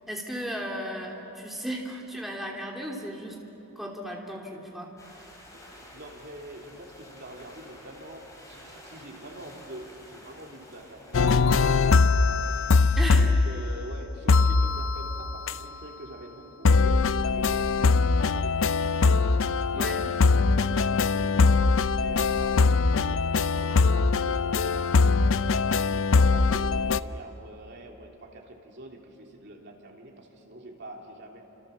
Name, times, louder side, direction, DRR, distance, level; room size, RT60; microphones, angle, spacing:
voice 1, 0.1-3.4 3.7-5.3 12.9-13.3 19.7-20.0, equal, ahead, -2 dB, 3.1 m, -35 dB
sound 1, 5.0-12.7, left 1 dB, 15° left, 4.5 m, -50 dB
voice 2, 5.7-12.5 12.8-31.4, right 1 dB, 50° right, 0 dB, 3.2 m, -45 dB
sound 2, 11.1-13.9 14.3-15.5 16.7-27.0, left 4 dB, 60° left, 0.5 m, -22 dB
30.0 x 27.0 x 7.2 m, 3.0 s
head